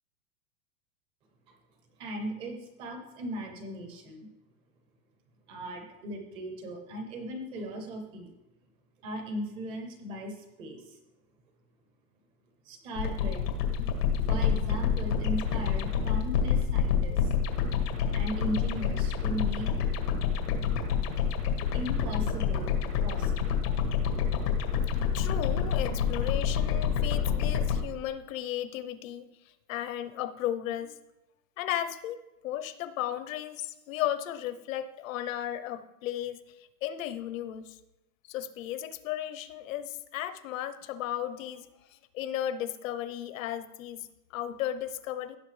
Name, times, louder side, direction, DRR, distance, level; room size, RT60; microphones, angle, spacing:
voice 1, 2.0-4.3 5.5-8.3 9.0-11.0 12.6-13.4 14.3-17.3 18.1-19.8 21.7-22.7 23.0-23.5, right 1 dB, 15° right, 5 dB, 0.4 m, -37 dB
sound 1, 12.9-27.8, left 7 dB, 85° left, 2.0 m, -28 dB
voice 2, 25.0-29.3 29.7-31.0 31.6-37.8 38.3-41.7 42.1-44.1 44.3-45.4, left 11 dB, 60° left, 13 dB, 0.8 m, -35 dB
16.0 x 6.0 x 3.2 m, 0.98 s
supercardioid pair, 165°, 46 cm